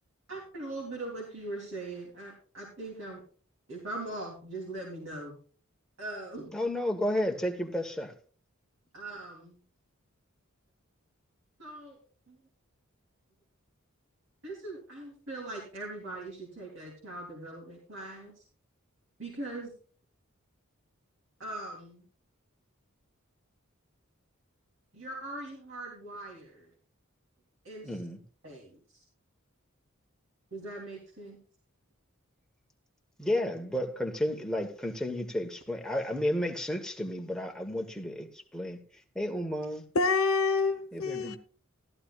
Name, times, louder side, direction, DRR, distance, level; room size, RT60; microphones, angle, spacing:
voice 1, 0.3-3.2 3.7-5.4 6.0-6.5 8.9-9.6 11.6-12.0 12.3-12.4 14.4-18.4 19.2-19.7 21.4-22.1 24.9-26.7 27.6-28.0 28.4-29.0 30.5-31.4, right 2 dB, 65° right, 3.2 m, -41 dB
voice 2, 6.5-8.1 27.8-28.2 33.2-38.8 39.1-39.8 40.9-41.4, left 1 dB, 5° left, 1.2 m, -32 dB
voice 3, 39.9-41.4, left 4 dB, 80° left, 1.1 m, -27 dB
14.5 x 13.0 x 2.4 m
head